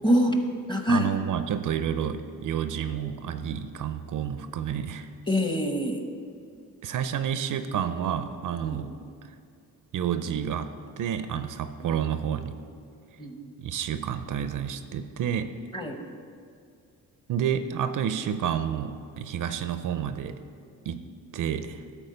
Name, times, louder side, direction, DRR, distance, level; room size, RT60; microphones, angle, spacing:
voice 1, 0.0-0.4 0.7-1.1 5.3-6.0 8.6-8.8 13.2-13.5 15.7-16.0, equal, 15° left, 4 dB, 1.0 m, -24 dB
voice 2, 0.9-5.1 6.8-8.9 9.9-10.7 11.0-12.6 13.6-15.5 17.3-20.4 20.9-21.0 21.3-21.8, right 8 dB, 60° right, 10 dB, 0.5 m, -29 dB
12.0 x 4.5 x 6.6 m, 2.3 s
cardioid pair, 105°, 35 cm